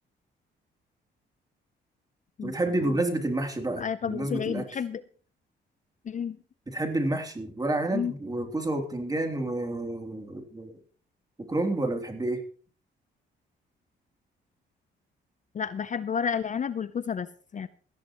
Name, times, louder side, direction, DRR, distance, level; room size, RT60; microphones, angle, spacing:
voice 1, 2.4-4.6 6.7-10.7 11.5-12.4, right 2 dB, 20° right, 4 dB, 3.1 m, -29 dB
voice 2, 3.8-5.0 6.1-6.4 7.9-8.1 15.5-17.7, left 7 dB, 40° left, 14 dB, 0.6 m, -31 dB
18.0 x 14.0 x 3.1 m, 0.42 s
cardioid pair, 90°, 20 cm